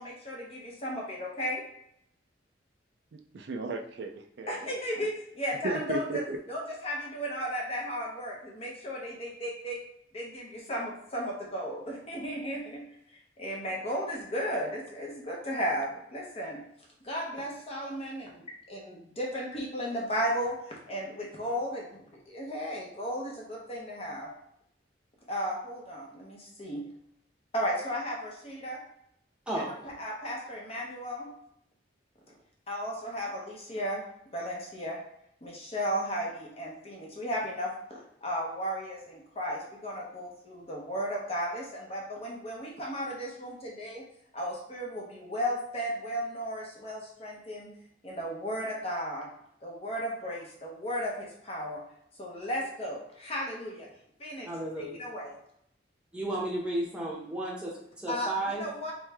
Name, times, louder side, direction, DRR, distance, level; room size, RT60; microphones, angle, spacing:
voice 1, 0.0-1.6 4.5-6.2 6.5-9.8 10.1-12.8 13.4-16.6 17.0-24.3 25.3-26.8 27.5-28.8 30.0-31.3 32.7-34.0 34.3-35.0 35.4-37.7 38.2-44.0 44.3-47.7 48.0-49.3 49.6-51.8 52.2-53.9 54.2-54.5 55.0-55.3 58.1-58.9, equal, 30° left, -2 dB, 0.8 m, -35 dB
voice 2, 3.1-4.7 5.6-6.4, right 3 dB, 65° right, 6 dB, 0.4 m, -35 dB
voice 3, 29.5-29.9 54.4-55.0 56.1-58.6, right 1 dB, 5° right, -4 dB, 0.9 m, -33 dB
3.2 x 3.1 x 3.5 m, 0.74 s
head